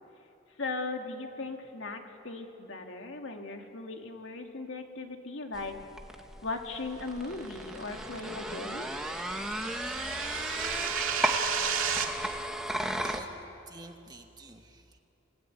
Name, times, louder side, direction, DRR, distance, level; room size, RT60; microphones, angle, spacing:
voice 1, 0.6-5.8 6.4-8.9, left 3 dB, 65° left, 3 dB, 2.3 m, -38 dB
sound 1, 5.5-13.2, right 1 dB, 5° right, 1.3 m, -35 dB
sound 2, 7.6-12.1, right 8 dB, 85° right, 2.1 m, -34 dB
voice 2, 13.7-15.0, right 2 dB, 20° right, 5 dB, 1.3 m, -48 dB
28.0 x 17.0 x 9.0 m, 2.8 s
head